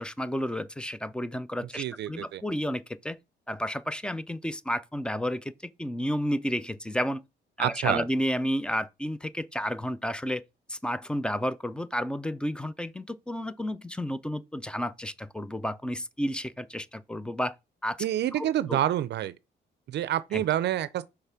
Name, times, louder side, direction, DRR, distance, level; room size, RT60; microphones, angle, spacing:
voice 1, 0.0-3.2 3.5-7.2 7.6-10.4 10.7-17.5 17.8-18.1 18.3-18.8 20.3-20.4, equal, 5° left, 0.4 m, -31 dB
voice 2, 1.7-2.4 7.6-8.0 18.0-19.3 19.9-21.0, right 12 dB, 65° right, 0.4 m, -28 dB
5.7 x 3.3 x 5.7 m
cardioid pair, 125°, 19 cm